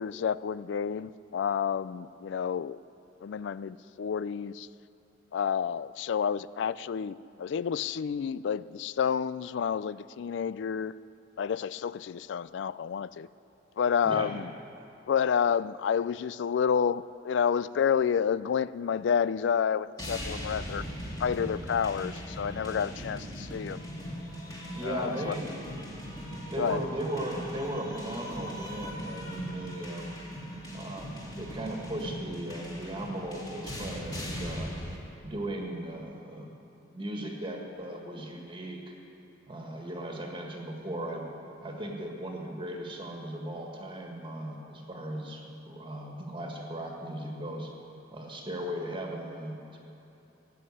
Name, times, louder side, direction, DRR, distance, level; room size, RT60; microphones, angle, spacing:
voice 1, 0.0-2.8 3.2-4.7 5.3-10.9 11.4-13.3 13.8-14.5 15.1-20.8 21.2-23.8 24.8-25.4 26.6-26.8, left 7 dB, 65° left, 18 dB, 0.3 m, -29 dB
sound 1, 20.0-35.0, equal, 20° left, 2.2 m, -39 dB
voice 2, 24.7-25.7 26.5-30.1 30.7-34.7 35.2-36.5 36.9-38.9 39.5-41.3 41.6-47.7 48.1-49.8, right 1 dB, 25° right, 0 dB, 1.7 m, -37 dB
15.0 x 7.7 x 9.7 m, 3.0 s
head